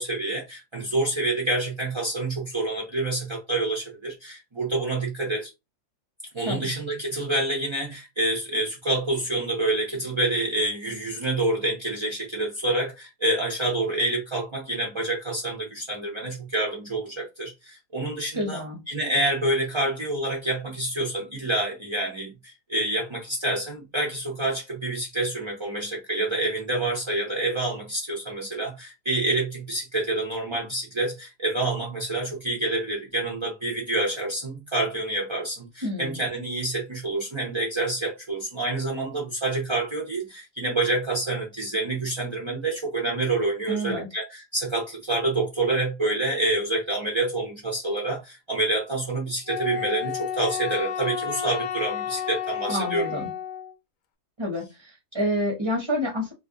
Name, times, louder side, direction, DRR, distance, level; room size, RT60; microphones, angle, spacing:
voice 1, 0.0-5.5 6.3-53.2, right 2 dB, 40° right, 0.4 m, -27 dB
voice 2, 18.3-18.8 35.8-36.2 43.7-44.1 52.7-53.3 54.4-56.3, equal, 20° right, 0.8 m, -28 dB
Wind instrument woodwind instrument, 49.5-53.7, left 9 dB, 70° left, 0.9 m, -31 dB
2.6 x 2.5 x 3.7 m
omnidirectional pair, 1.7 m